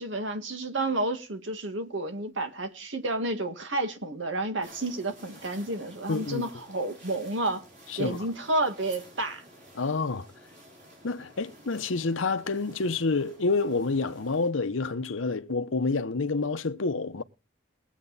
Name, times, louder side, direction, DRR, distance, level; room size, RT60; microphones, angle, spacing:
voice 1, 0.0-7.6 8.0-9.4, right 2 dB, 75° right, 2.0 m, -30 dB
sound 1, 4.6-14.5, right 1 dB, 40° right, 5.8 m, -52 dB
voice 2, 6.1-6.5 7.9-8.3 9.7-10.3 11.0-17.2, left 3 dB, 85° left, 0.8 m, -28 dB
21.0 x 8.2 x 4.1 m
head